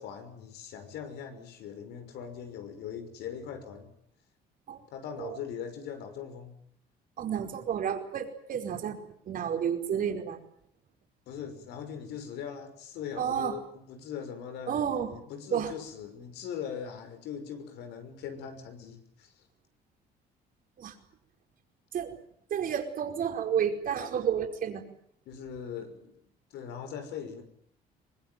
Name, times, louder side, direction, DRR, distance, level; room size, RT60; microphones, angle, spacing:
voice 1, 0.0-3.9 4.9-6.6 11.3-19.5 25.3-26.1 26.5-27.4, left 7 dB, 80° left, 7 dB, 6.0 m, -41 dB
voice 2, 7.2-10.4 13.2-13.6 14.7-15.1 15.5-15.7 20.8-20.9 21.9-22.1 22.5-24.8, right 8 dB, 55° right, 4 dB, 5.0 m, -31 dB
24.0 x 21.0 x 9.3 m, 0.66 s
cardioid pair, 110°, 17 cm